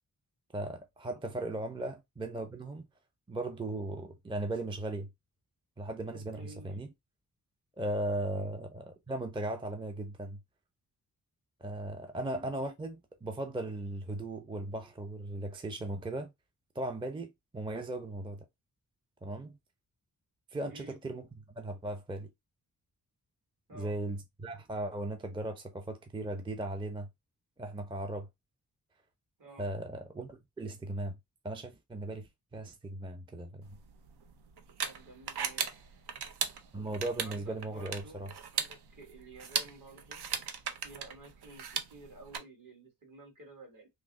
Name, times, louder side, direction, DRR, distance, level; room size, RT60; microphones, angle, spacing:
voice 1, 0.5-2.9 3.3-5.1 5.8-6.9 7.8-10.4 11.6-16.3 16.8-18.5 19.2-19.6 20.5-22.3 23.7-27.1 27.6-28.3 29.6-31.2 31.4-33.8 36.7-38.3, right 1 dB, 15° right, 0.5 m, -37 dB
voice 2, 6.1-6.8 8.3-8.5 20.7-21.0 23.7-23.9 29.4-29.7 34.8-35.8 37.0-38.3 38.5-40.2 40.8-43.9, right 2 dB, 55° right, 1.7 m, -52 dB
sound 1, 33.7-42.4, right 7 dB, 85° right, 0.6 m, -38 dB
3.1 x 2.0 x 3.5 m
wide cardioid pair, 80°, 38 cm